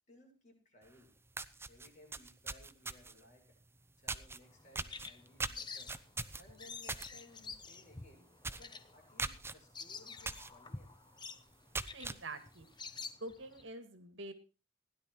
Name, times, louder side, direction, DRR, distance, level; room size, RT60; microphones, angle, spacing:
voice 1, 0.1-1.1 1.7-3.6 4.0-5.9 6.4-8.3 8.6-10.9, left 1 dB, 40° left, -1 dB, 7.4 m, -61 dB
sound 1, 0.9-1.0 1.3-3.2 4.1-4.4 4.7-7.1 7.4-7.7 8.0-8.1 8.4-8.7 9.2-9.5 10.2-10.5 10.9-11.0 11.5-12.2, right 3 dB, 15° right, 0.7 m, -40 dB
Bird vocalization bird call bird song, 4.4-13.6, left 4 dB, 25° left, 1.0 m, -49 dB
voice 2, 11.9-12.7 13.2-14.3, right 2 dB, 85° right, 10 dB, 2.0 m, -46 dB
16.5 x 11.0 x 4.4 m, 0.33 s
head